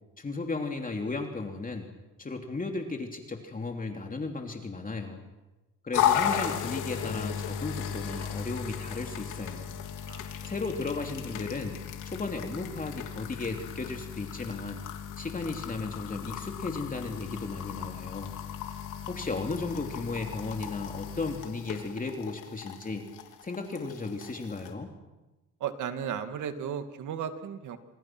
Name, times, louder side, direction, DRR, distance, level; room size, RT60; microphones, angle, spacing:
voice 1, 0.2-1.9 2.2-5.2 5.8-9.7 10.4-14.8 15.2-18.3 19.1-23.1 23.4-24.9, left 3 dB, 25° left, 3 dB, 3.1 m, -35 dB
sound 1, 5.9-24.7, left 9 dB, 90° left, 3.2 m, -35 dB
voice 2, 25.6-27.8, right 8 dB, 75° right, 8 dB, 2.4 m, -35 dB
29.0 x 27.0 x 6.2 m, 1.1 s
cardioid pair, 90°, 30 cm